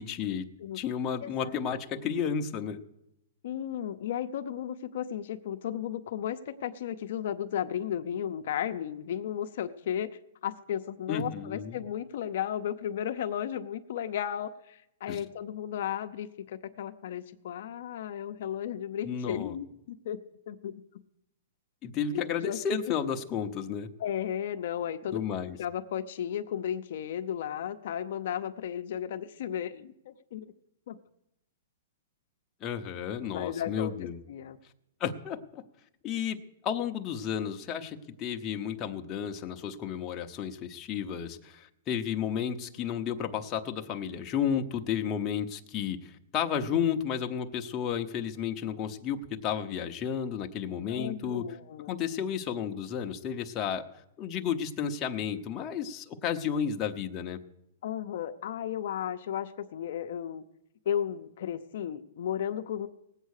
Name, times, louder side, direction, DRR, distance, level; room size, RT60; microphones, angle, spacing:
voice 1, 0.0-0.5 0.7-2.8 11.1-11.8 15.1-15.2 19.0-19.5 21.8-23.9 25.1-25.6 32.6-34.2 35.0-35.6 36.0-36.4 36.6-51.4 51.9-53.8 54.2-57.4, left 8 dB, 25° left, 4 dB, 0.8 m, -32 dB
voice 2, 3.4-20.2 20.5-20.8 22.1-22.6 24.0-25.2 25.6-30.5 30.9-31.0 33.3-33.9 34.3-34.6 50.9-52.0 57.8-60.4 60.9-62.9, left 9 dB, 60° left, 7 dB, 0.7 m, -34 dB
18.5 x 8.2 x 6.5 m, 0.82 s
hypercardioid pair, 160°, 0 cm